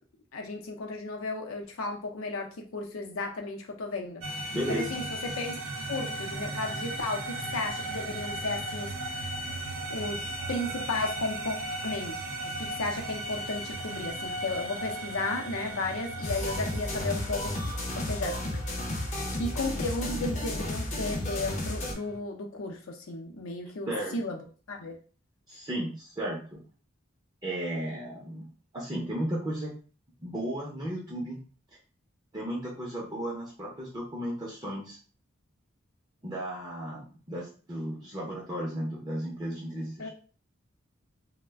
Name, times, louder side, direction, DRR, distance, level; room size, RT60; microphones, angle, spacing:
voice 1, 0.3-5.6 5.9-9.2 9.9-11.6 11.8-17.5 17.9-18.4 19.4-24.4 24.7-25.0 40.0-40.1, left 2 dB, 85° left, 3 dB, 0.5 m, -34 dB
sound 1, 4.2-22.2, right 1 dB, 85° right, 0.5 m, -37 dB
voice 2, 4.5-5.0 23.9-24.2 25.5-26.6 27.4-29.7 30.2-31.4 32.3-35.0 36.2-40.1, right 1 dB, 20° right, -3 dB, 0.5 m, -34 dB
sound 2, 16.2-21.9, left 1 dB, 35° left, 0.5 m, -33 dB
2.4 x 2.1 x 3.4 m, 0.39 s
head